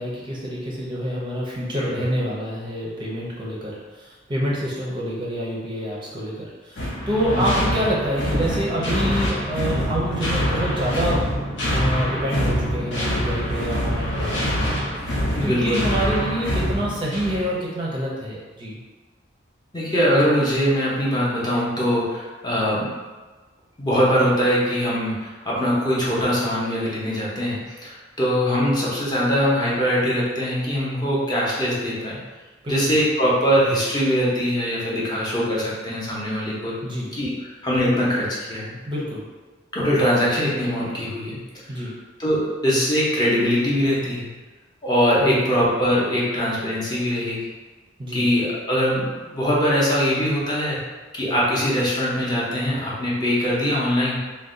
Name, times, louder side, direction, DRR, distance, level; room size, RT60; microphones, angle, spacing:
voice 1, 0.0-11.3 11.7-14.8 15.1-18.8 32.6-32.8 36.8-37.1 38.9-39.2 41.7-41.9 45.2-45.4 48.0-48.3, equal, 25° right, -5 dB, 0.5 m, -27 dB
sound 1, 6.8-17.5, equal, 70° left, 0.7 m, -25 dB
voice 2, 15.3-16.0 19.7-22.9 23.8-32.2 32.7-36.8 37.1-38.8 39.7-41.4 41.7-41.9 42.2-44.3 44.8-47.5 48.1-50.8 51.1-54.2, equal, 20° left, -6 dB, 0.7 m, -22 dB
2.5 x 2.1 x 3.7 m, 1.3 s
head